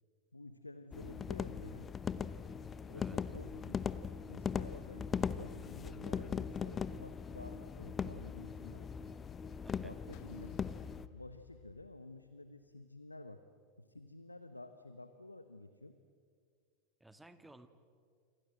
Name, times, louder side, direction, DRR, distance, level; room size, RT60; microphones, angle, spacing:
voice 1, 0.3-2.2 2.9-3.9 4.3-9.1 9.7-10.6 11.1-13.4 13.8-16.0, left 2 dB, 85° left, 10 dB, 1.0 m, -51 dB
sound 1, 0.9-11.1, left 6 dB, 20° left, 0.9 m, -40 dB
sound 2, 10.1-12.5, left 13 dB, 45° left, 1.8 m, -56 dB
voice 2, 17.0-17.7, right 1 dB, 5° right, 10 dB, 1.8 m, -56 dB
28.5 x 25.5 x 7.8 m, 2.1 s
figure-of-eight pair, 85°, 0 cm